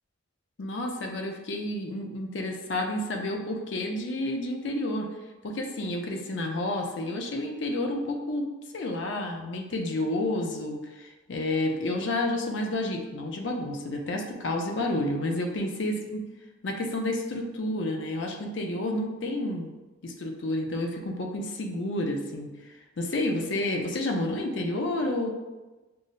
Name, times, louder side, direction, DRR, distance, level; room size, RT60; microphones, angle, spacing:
voice 1, 0.6-5.1 5.4-8.5 8.7-16.2 16.6-19.7 20.0-22.5 23.0-25.3, left 1 dB, 65° left, 2 dB, 0.5 m, -30 dB
5.6 x 2.1 x 2.5 m, 1.1 s
head